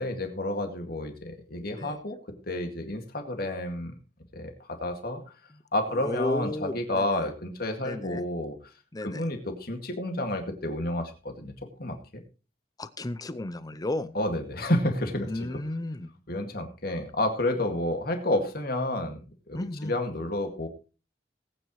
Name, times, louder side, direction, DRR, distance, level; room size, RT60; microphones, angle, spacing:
voice 1, 0.0-2.2 2.5-3.9 4.3-5.2 5.7-8.6 9.0-11.5 11.8-12.2 14.1-15.6 16.3-19.2 19.5-20.7, left 1 dB, 55° left, 5 dB, 2.2 m, -30 dB
voice 2, 5.9-7.3 7.8-8.3 8.9-9.2 12.8-14.2 15.2-16.1 19.5-20.0, left 2 dB, 20° left, 14 dB, 0.6 m, -33 dB
19.5 x 9.1 x 3.1 m, 0.33 s
head